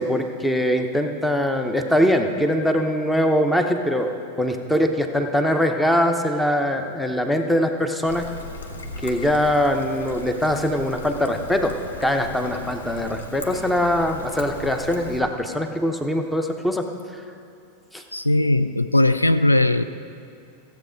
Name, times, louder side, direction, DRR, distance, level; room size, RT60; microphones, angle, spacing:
voice 1, 0.0-4.1 4.4-8.3 9.0-11.7 12.0-16.9 17.9-18.0, equal, 5° left, 6 dB, 0.9 m, -22 dB
Trickle dribble, 8.1-15.2, left 2 dB, 70° left, 1.0 m, -37 dB
voice 2, 18.1-19.8, left 1 dB, 85° left, 12 dB, 0.3 m, -18 dB
15.5 x 8.1 x 5.2 m, 2.5 s
figure-of-eight pair, 90°, 0 cm